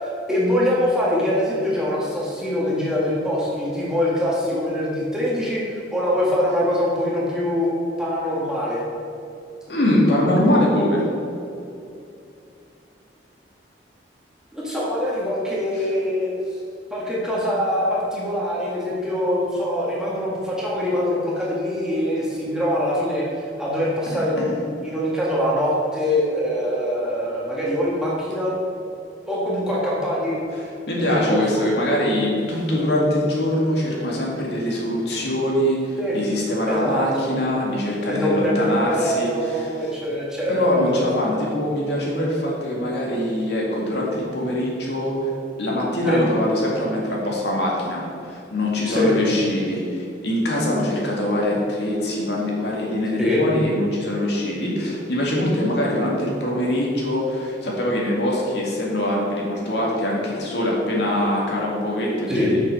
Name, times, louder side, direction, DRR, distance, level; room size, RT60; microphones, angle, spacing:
voice 1, 0.0-7.7 8.0-8.8 14.5-16.6 16.9-28.5 29.3-30.4 31.0-31.4 36.0-36.2 36.7-37.3 38.1-41.1 46.1-46.2 48.9-49.1 53.2-53.5 62.3-62.6, left 1 dB, 5° right, -6 dB, 1.7 m, -23 dB
voice 2, 9.7-11.1 15.8-15.9 24.1-24.5 30.5-39.9 40.5-62.6, left 1 dB, 65° left, -3 dB, 2.1 m, -23 dB
7.4 x 6.4 x 5.6 m, 2.7 s
head